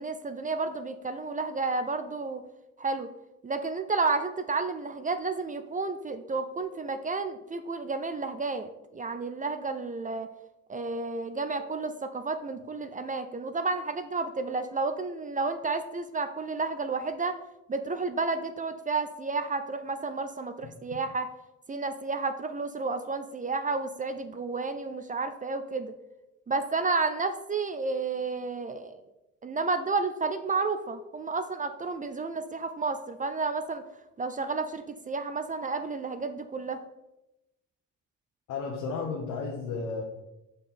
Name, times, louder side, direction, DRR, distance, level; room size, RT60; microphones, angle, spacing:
voice 1, 0.0-2.4 2.8-3.1 3.4-10.3 10.7-17.4 17.7-21.3 21.7-25.9 26.5-29.0 29.4-33.8 34.2-36.8, right 3 dB, 25° right, 9 dB, 0.5 m, -31 dB
voice 2, 38.5-40.0, left 4 dB, 80° left, 0 dB, 1.0 m, -33 dB
5.7 x 5.3 x 4.2 m, 0.96 s
cardioid pair, 90°, 30 cm